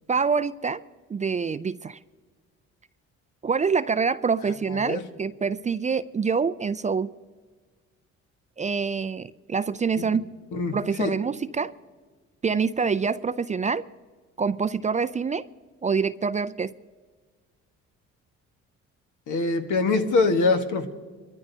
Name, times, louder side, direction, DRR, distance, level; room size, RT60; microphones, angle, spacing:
voice 1, 0.1-0.8 1.1-2.0 3.4-7.1 8.6-10.3 10.7-11.7 12.4-13.8 14.4-15.5 15.8-16.7, right 5 dB, 25° right, 14 dB, 0.4 m, -26 dB
voice 2, 4.7-5.0 10.5-11.1 19.3-20.9, left 3 dB, 75° left, 6 dB, 1.5 m, -24 dB
23.5 x 13.5 x 2.8 m, 1.5 s
cardioid pair, 90°, 30 cm